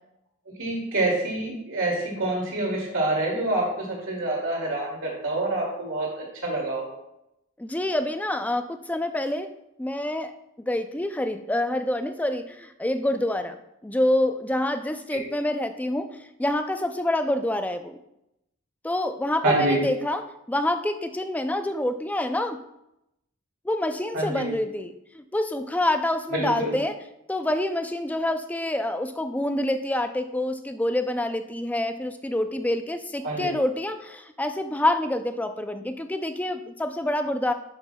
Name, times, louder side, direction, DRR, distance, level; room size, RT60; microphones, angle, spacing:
voice 1, 0.6-6.9 19.4-19.8 24.1-24.5 26.3-26.8 33.2-33.5, right 2 dB, 65° right, -2 dB, 2.4 m, -26 dB
voice 2, 7.6-9.5 9.8-13.6 13.8-18.0 18.8-20.2 20.5-22.6 23.6-26.9 27.3-37.5, left 1 dB, 5° left, 8 dB, 0.4 m, -27 dB
11.0 x 5.8 x 2.3 m, 0.85 s
head